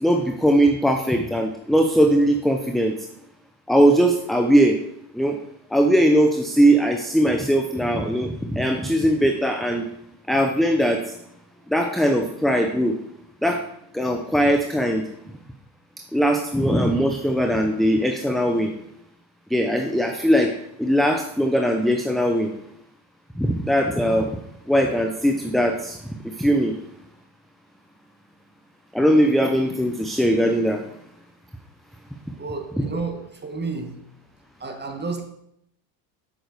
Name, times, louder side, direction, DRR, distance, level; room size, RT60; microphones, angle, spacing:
voice 1, 0.0-2.9 3.7-4.8 5.1-5.4 5.7-9.8 10.3-11.2 11.7-13.0 13.4-13.6 13.9-15.1 16.1-18.7 19.5-20.5 20.8-22.5 23.4-24.3 24.7-26.0 26.4-26.8 28.9-30.8, equal, ahead, 4 dB, 0.8 m, -20 dB
voice 2, 32.4-34.0 34.6-35.2, right 4 dB, 20° right, 4 dB, 1.9 m, -31 dB
8.1 x 6.2 x 6.7 m, 0.75 s
supercardioid pair, 95°, 46 cm